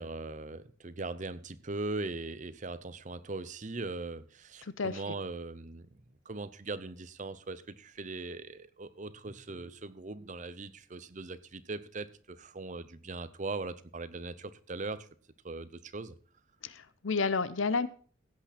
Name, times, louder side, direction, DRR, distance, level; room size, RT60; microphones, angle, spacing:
voice 1, 0.0-5.9 6.3-15.1 15.4-16.1, right 3 dB, 40° right, 14 dB, 0.7 m, -40 dB
voice 2, 16.6-17.9, left 4 dB, 80° left, 16 dB, 0.7 m, -30 dB
15.5 x 8.5 x 4.3 m, 0.42 s
head